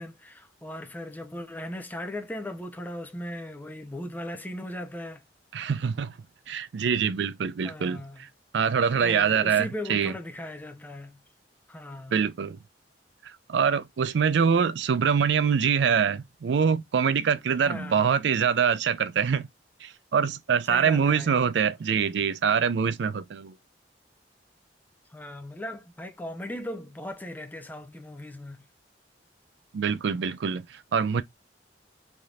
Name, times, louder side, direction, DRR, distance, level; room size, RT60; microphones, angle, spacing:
voice 1, 0.0-5.2 7.6-8.3 9.0-11.2 11.7-12.1 17.6-18.1 20.7-21.4 25.1-28.6, left 1 dB, 10° left, 0.5 m, -38 dB
voice 2, 5.5-6.1 6.5-8.0 8.5-10.1 12.1-12.6 13.5-19.5 19.8-23.5 29.7-31.2, right 6 dB, 70° right, 0.4 m, -24 dB
3.4 x 2.7 x 2.3 m
head